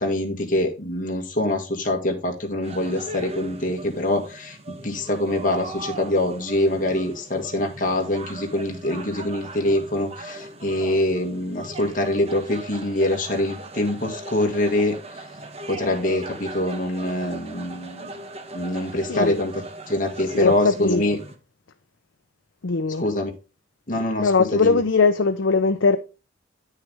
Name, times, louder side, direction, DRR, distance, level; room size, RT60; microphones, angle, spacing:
voice 1, 0.0-15.2 15.7-18.1 18.5-21.2 23.0-23.3 23.9-24.8, left 1 dB, 45° left, 1.9 m, -24 dB
sound 1, 2.6-21.4, right 2 dB, 35° right, 1.1 m, -39 dB
voice 2, 19.1-19.4 20.3-21.0 22.6-23.0 24.2-26.0, left 4 dB, 75° left, 0.6 m, -20 dB
9.5 x 6.5 x 3.5 m
head